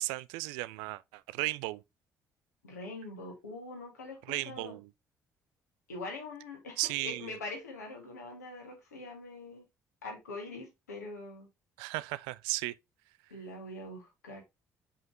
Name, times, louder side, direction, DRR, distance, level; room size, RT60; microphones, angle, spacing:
voice 1, 0.0-1.8 4.3-4.9 6.8-7.3 11.8-12.7, right 19 dB, 65° right, 0.4 m, -35 dB
voice 2, 2.6-4.2 4.5-4.8 5.9-9.7 10.0-11.5 13.3-14.4, left 2 dB, 85° left, 2.0 m, -43 dB
5.6 x 5.3 x 3.6 m
figure-of-eight pair, 45°, 8 cm